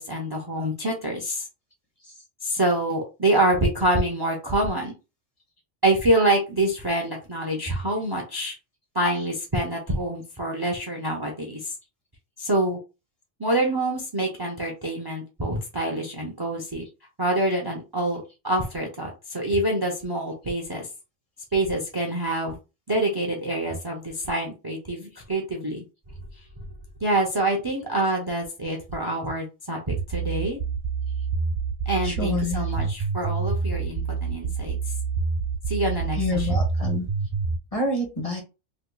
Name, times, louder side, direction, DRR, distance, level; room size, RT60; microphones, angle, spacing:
voice 1, 0.0-1.5 2.4-4.9 5.8-8.5 8.9-11.7 12.4-12.8 13.4-16.9 17.2-20.9 21.5-22.5 22.9-25.8 27.0-30.6 31.9-34.7 35.7-36.6, right 1 dB, 25° right, 0 dB, 0.5 m, -26 dB
sound 1, 29.9-37.6, right 5 dB, 55° right, 1.5 m, -27 dB
voice 2, 32.0-32.6 36.2-37.1 37.7-38.4, left 2 dB, 35° left, 0 dB, 1.0 m, -27 dB
3.4 x 3.0 x 2.3 m, 0.28 s
omnidirectional pair, 1.2 m